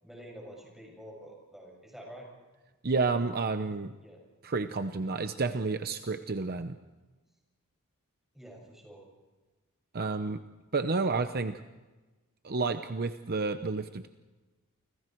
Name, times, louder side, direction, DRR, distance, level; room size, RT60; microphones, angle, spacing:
voice 1, 0.0-2.3 4.0-4.2 8.3-9.0, equal, ahead, 0 dB, 7.1 m, -48 dB
voice 2, 2.8-3.9 4.4-6.8 9.9-10.4 10.7-11.6 12.4-14.1, right 4 dB, 45° right, 9 dB, 0.8 m, -30 dB
30.0 x 25.5 x 4.6 m, 1.2 s
head